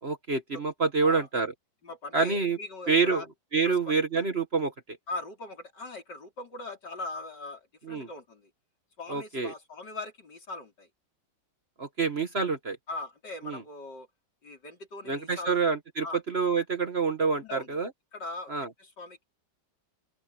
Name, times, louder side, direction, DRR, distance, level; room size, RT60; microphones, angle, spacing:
voice 1, 0.0-1.5 2.1-2.6 2.9-3.2 3.5-5.0 7.8-8.1 9.1-9.5 11.8-12.8 13.4-13.6 15.0-17.9 18.5-18.7, right 4 dB, 35° right, 1.5 m, -27 dB
voice 2, 1.8-3.3 3.6-3.8 5.1-7.6 7.9-8.5 9.0-10.9 12.9-14.1 14.4-15.6 16.0-16.2 17.4-17.8 18.1-18.5 18.8-19.2, left 2 dB, 70° left, 5.2 m, -40 dB
open air
omnidirectional pair, 1.9 m